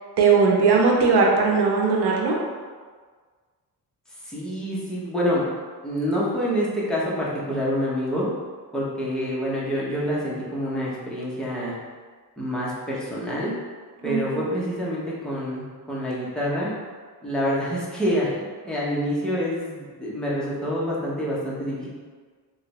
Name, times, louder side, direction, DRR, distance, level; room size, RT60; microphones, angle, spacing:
voice 1, 0.2-2.4 14.0-14.5, right 4 dB, 85° right, -1 dB, 0.7 m, -19 dB
voice 2, 4.2-5.5 5.8-8.3 8.7-11.7 12.4-13.5 14.0-16.7 17.2-21.9, equal, ahead, -7 dB, 0.6 m, -27 dB
3.2 x 2.7 x 2.9 m, 1.5 s
wide cardioid pair, 175°, 39 cm